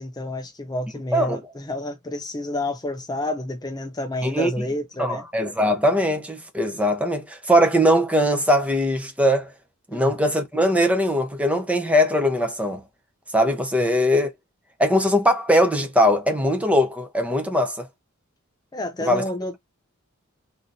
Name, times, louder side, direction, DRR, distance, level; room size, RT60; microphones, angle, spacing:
voice 1, 0.0-5.2 9.9-10.1 18.7-19.6, left 1 dB, 20° left, 0.5 m, -29 dB
voice 2, 5.0-9.5 9.9-12.8 13.3-14.3 14.8-17.9 19.0-19.2, equal, 5° right, 0.8 m, -20 dB
3.8 x 3.0 x 2.6 m
head